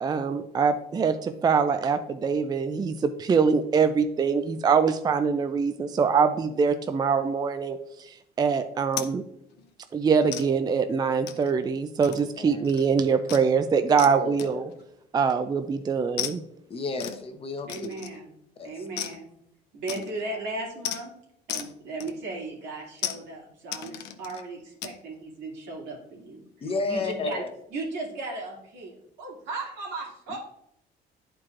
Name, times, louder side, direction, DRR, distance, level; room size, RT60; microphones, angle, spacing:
voice 1, 0.0-7.8 8.4-9.2 9.9-14.7 15.1-16.4, right 5 dB, 25° right, 9 dB, 0.4 m, -24 dB
sound 1, 8.9-9.1 9.5-9.7 10.3-10.5 11.3-11.5 12.0-12.4 12.6-12.9 13.3-13.5 14.0-14.1 14.4-14.8 16.2-16.4 17.0-17.2 17.7-18.2 19.0-19.2 19.9-20.2 20.8-21.0 21.5-21.7 22.0-22.5 23.0-23.2 23.7-24.4 24.8-25.0, left 11 dB, 80° left, 0.6 m, -35 dB
voice 2, 12.1-12.6 14.1-14.6 16.7-17.9 18.6-18.7 26.6-27.5 30.3-30.4, left 3 dB, 35° left, 7 dB, 0.8 m, -32 dB
voice 3, 17.7-18.3 18.6-19.3 19.7-21.1 21.5-27.4 27.7-30.4, right 2 dB, 90° right, -3 dB, 2.5 m, -36 dB
10.5 x 4.6 x 2.5 m, 0.78 s
cardioid pair, 110°, 17 cm